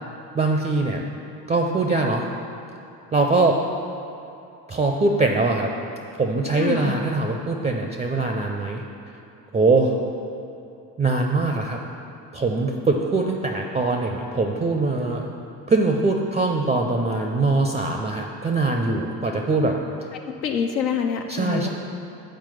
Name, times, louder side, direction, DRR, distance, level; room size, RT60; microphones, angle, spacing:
voice 1, 0.3-1.0 1.5-2.3 3.1-3.6 4.7-5.7 6.2-8.8 9.5-9.9 11.0-11.8 12.3-15.3 15.7-19.7 21.3-21.7, right 3 dB, 15° right, 2 dB, 0.4 m, -22 dB
voice 2, 6.6-7.0 20.2-21.7, left 6 dB, 80° left, 3 dB, 0.6 m, -25 dB
7.3 x 4.5 x 5.8 m, 2.7 s
figure-of-eight pair, 50°, 50 cm